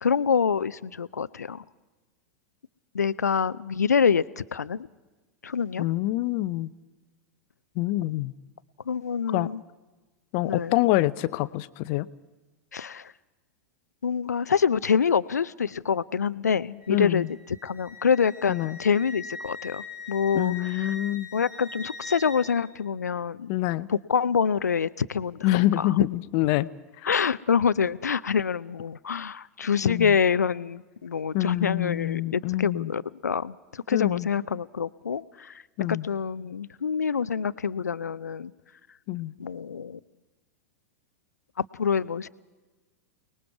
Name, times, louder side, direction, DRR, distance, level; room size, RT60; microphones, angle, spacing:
voice 1, 0.0-1.6 2.9-4.9 5.4-5.8 8.9-9.6 10.4-10.7 12.7-13.1 14.0-17.3 17.6-20.9 21.3-23.5 23.9-26.0 27.0-35.6 35.9-38.5 39.4-40.0 41.7-42.3, left 6 dB, 75° left, 18 dB, 0.6 m, -26 dB
voice 2, 5.8-6.7 7.8-8.3 9.3-9.5 10.3-12.1 16.9-17.3 18.5-18.8 20.3-21.3 23.5-23.9 25.4-26.7 29.8-30.1 31.3-32.9 33.9-34.3 35.8-36.1 39.1-39.3, left 17 dB, 45° left, 16 dB, 0.8 m, -26 dB
Wind instrument woodwind instrument, 16.8-22.6, left 3 dB, 10° right, 5.4 m, -41 dB
29.0 x 20.5 x 4.8 m, 1.2 s
figure-of-eight pair, 95°, 9 cm